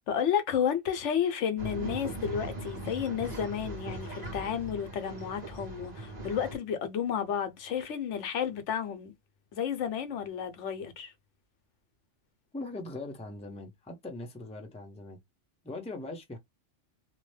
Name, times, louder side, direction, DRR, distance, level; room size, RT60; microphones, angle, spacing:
voice 1, 0.1-9.1 9.5-11.1, left 8 dB, 80° left, 1.0 m, -31 dB
Male speech man speaking / Chatter / Rattle, 1.6-6.5, right 1 dB, 35° right, 1.1 m, -40 dB
voice 2, 12.5-15.2 15.6-16.4, left 2 dB, 5° left, 0.5 m, -40 dB
2.7 x 2.1 x 3.1 m
omnidirectional pair, 1.2 m